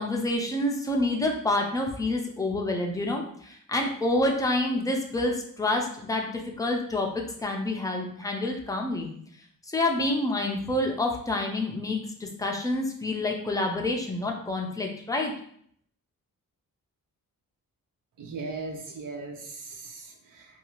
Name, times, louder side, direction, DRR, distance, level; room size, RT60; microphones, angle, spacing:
voice 1, 0.0-9.1 9.7-15.3, left 2 dB, 10° left, 1 dB, 0.4 m, -28 dB
voice 2, 18.2-20.5, right 3 dB, 65° right, 2 dB, 0.6 m, -38 dB
2.7 x 2.3 x 2.9 m, 0.64 s
wide cardioid pair, 115°, 34 cm